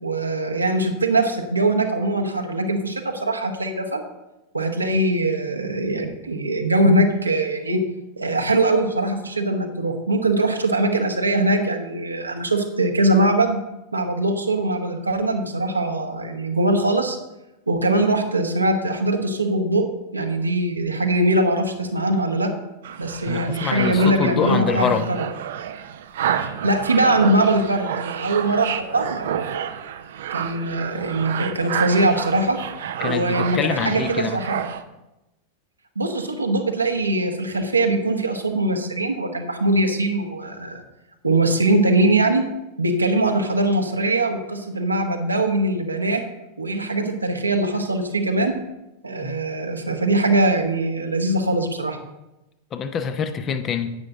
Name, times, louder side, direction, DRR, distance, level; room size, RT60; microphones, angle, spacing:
voice 1, 0.0-4.0 4.5-7.8 8.2-13.6 13.9-17.2 17.7-19.8 20.1-22.5 23.0-25.2 26.4-29.4 30.3-32.6 33.0-34.6 35.9-40.8 41.2-42.4 42.8-46.2 46.6-48.6 49.0-52.0, right 2 dB, 80° right, 3 dB, 1.2 m, -21 dB
sound 1, 22.8-34.8, right 9 dB, 60° right, 0.6 m, -30 dB
voice 2, 23.3-25.1 33.0-34.4 49.2-49.4 52.7-54.0, left 6 dB, 30° left, 9 dB, 0.8 m, -25 dB
10.5 x 8.8 x 3.7 m, 0.95 s
figure-of-eight pair, 90°, 0 cm